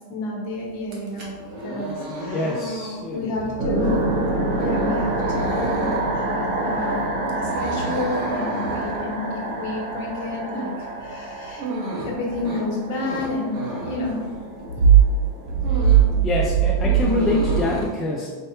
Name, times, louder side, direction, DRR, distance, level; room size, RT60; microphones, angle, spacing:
voice 1, 0.1-2.5 3.1-4.2 4.5-5.8 6.1-11.7 12.0-14.3, left 2 dB, 50° left, -2 dB, 1.2 m, -31 dB
sound 1, 0.8-14.9 15.2-16.2 16.4-17.9, right 1 dB, 40° right, 1.2 m, -33 dB
voice 2, 2.3-3.4 16.2-18.4, left 2 dB, 15° left, -3 dB, 0.4 m, -25 dB
sound 2, 3.6-17.6, right 6 dB, 80° right, 1.2 m, -23 dB
4.3 x 2.9 x 3.3 m, 1.5 s
supercardioid pair, 145°, 0 cm